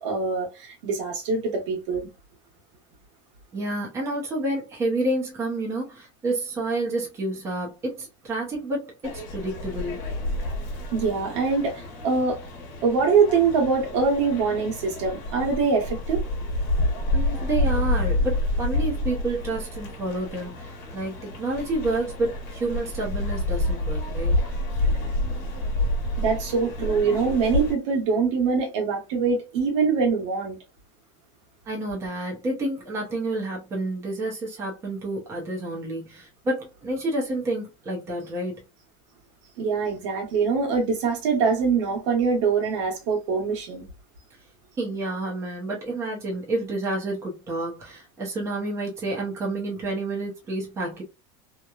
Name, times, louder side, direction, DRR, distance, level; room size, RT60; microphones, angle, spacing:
voice 1, 0.0-2.1 10.9-12.4 12.8-16.2 26.2-30.6 39.6-43.9, right 5 dB, 75° right, 1.2 m, -23 dB
voice 2, 3.5-10.0 17.1-24.4 31.7-38.6 44.8-51.0, right 2 dB, 15° right, 0.7 m, -29 dB
sound 1, 9.0-27.7, left 1 dB, 45° left, 1.2 m, -28 dB
2.9 x 2.2 x 2.3 m
cardioid pair, 165°, 16 cm